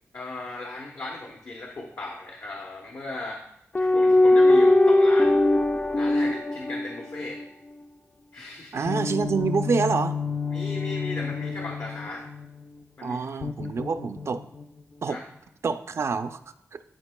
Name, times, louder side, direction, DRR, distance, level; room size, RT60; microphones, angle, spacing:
voice 1, 0.1-3.4 3.8-5.4 5.9-7.4 8.3-8.8 10.5-12.3 13.0-13.2 15.1-15.2, left 2 dB, 60° left, 0 dB, 0.8 m, -37 dB
sound 1, 3.7-7.4 8.9-12.6 13.4-14.6, left 2 dB, 30° left, 0.4 m, -22 dB
voice 2, 8.7-10.2 13.0-14.4 15.0-15.2 15.6-16.4 16.7-16.8, right 5 dB, 65° right, 10 dB, 0.4 m, -27 dB
11.5 x 4.4 x 2.2 m, 0.80 s
wide cardioid pair, 120°, 5 cm